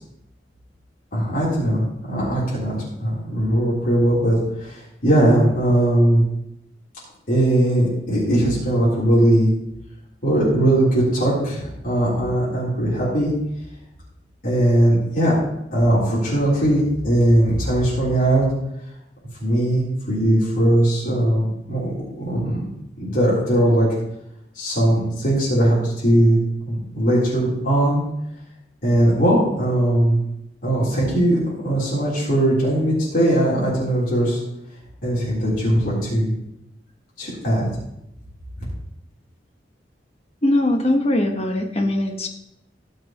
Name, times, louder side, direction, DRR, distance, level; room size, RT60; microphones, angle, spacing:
voice 1, 1.1-6.2 7.3-9.5 10.2-13.3 14.4-15.4 15.7-18.4 19.4-22.7 23.0-23.9 24.5-26.4 26.7-28.0 28.8-30.2 30.6-31.4 31.6-34.4 35.0-36.3 37.2-37.7, right 1 dB, 50° left, -8 dB, 3.8 m, -19 dB
voice 2, 40.4-42.3, left 1 dB, 35° left, 4 dB, 1.3 m, -20 dB
18.5 x 6.5 x 3.1 m, 0.84 s
head